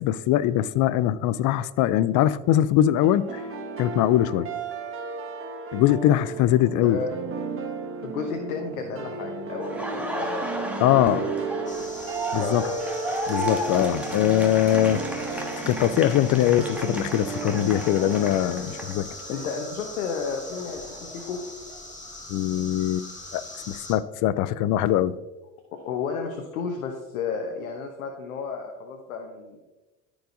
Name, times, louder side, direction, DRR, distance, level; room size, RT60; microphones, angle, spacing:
voice 1, 0.0-3.4 3.8-4.5 5.7-7.0 10.8-11.2 12.3-12.7 13.3-15.0 15.3-19.1 22.3-25.2, left 12 dB, 50° left, 0.5 m, -22 dB
sound 1, 3.0-19.9, right 4 dB, 30° right, 1.6 m, -34 dB
voice 2, 8.0-11.8 12.4-12.8 19.3-21.4 25.7-29.6, left 5 dB, 80° left, 1.0 m, -33 dB
Laughter, 9.6-19.4 19.8-21.8, right 1 dB, 5° right, 1.5 m, -35 dB
sound 2, 11.7-23.9, left 2 dB, 15° left, 1.9 m, -42 dB
13.5 x 4.9 x 2.6 m
hypercardioid pair, 75°, 42 cm